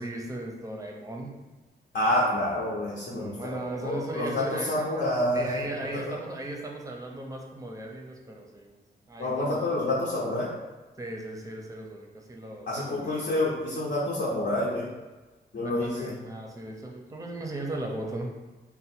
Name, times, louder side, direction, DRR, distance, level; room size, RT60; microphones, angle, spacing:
voice 1, 0.0-1.4 3.1-4.9 5.3-8.8 9.1-9.6 11.0-13.3 15.8-18.4, right 1 dB, 20° right, 0 dB, 0.6 m, -37 dB
voice 2, 1.9-5.6 6.1-6.2 9.2-10.5 12.7-14.9 15.5-16.2, left 1 dB, 65° left, -6 dB, 0.8 m, -28 dB
4.1 x 2.1 x 4.3 m, 1.2 s
wide cardioid pair, 160°, 17 cm